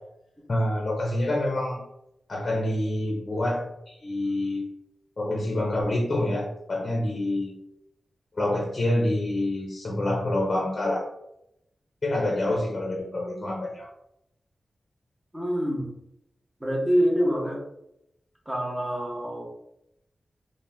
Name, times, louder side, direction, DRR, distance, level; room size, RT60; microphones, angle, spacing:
voice 1, 0.5-1.8 2.3-4.7 5.2-7.6 8.3-11.1 12.0-13.9, left 1 dB, 35° left, -2 dB, 0.5 m, -27 dB
voice 2, 15.3-15.9 16.6-17.6 18.5-19.4, equal, 15° right, -2 dB, 0.7 m, -25 dB
2.8 x 2.1 x 3.3 m, 0.81 s
wide cardioid pair, 150°, 0 cm